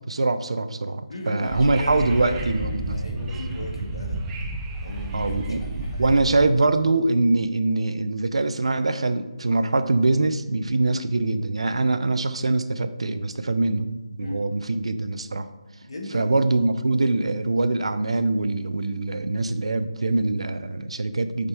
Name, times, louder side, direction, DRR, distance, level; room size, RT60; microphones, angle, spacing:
voice 1, 0.1-3.0 5.1-15.5 16.1-21.5, right 2 dB, 75° right, 10 dB, 0.6 m, -23 dB
voice 2, 1.1-2.4 2.9-4.2 4.8-6.5 10.8-11.0 14.2-14.4 15.8-16.4, left 1 dB, 65° left, 1 dB, 1.6 m, -36 dB
Wind / Subway metro underground, 1.4-6.4, right 2 dB, 10° right, 0.5 m, -31 dB
6.8 x 5.1 x 4.4 m, 1.1 s
figure-of-eight pair, 165°, 3 cm